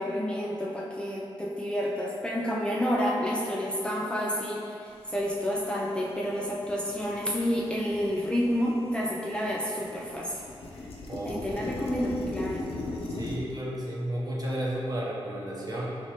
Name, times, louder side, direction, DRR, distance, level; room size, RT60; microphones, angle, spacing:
voice 1, 0.0-10.4 11.2-12.6, equal, 10° left, -5 dB, 0.4 m, -29 dB
sound 1, 5.6-5.7 6.1-9.1 9.4-13.4, left 2 dB, 80° left, 0.4 m, -38 dB
voice 2, 11.1-11.9 13.1-16.0, right 1 dB, 40° right, -5 dB, 0.7 m, -33 dB
3.2 x 3.2 x 2.8 m, 2.6 s
cardioid pair, 85°, 10 cm